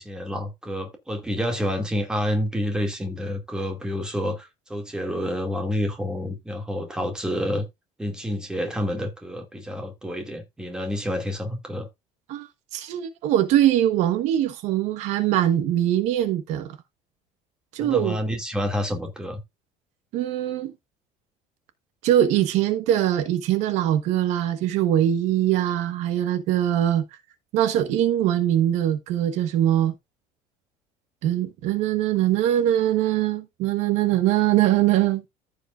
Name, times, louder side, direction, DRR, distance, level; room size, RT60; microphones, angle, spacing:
voice 1, 0.0-7.6 8.0-11.9 17.8-19.4, equal, 5° right, 2.2 m, -28 dB
voice 2, 12.3-16.8 17.7-18.2 20.1-20.7 22.0-27.0 27.5-29.9 31.2-35.2, right 12 dB, 65° right, 1.1 m, -22 dB
14.5 x 4.9 x 2.4 m
cardioid pair, 160°, 13 cm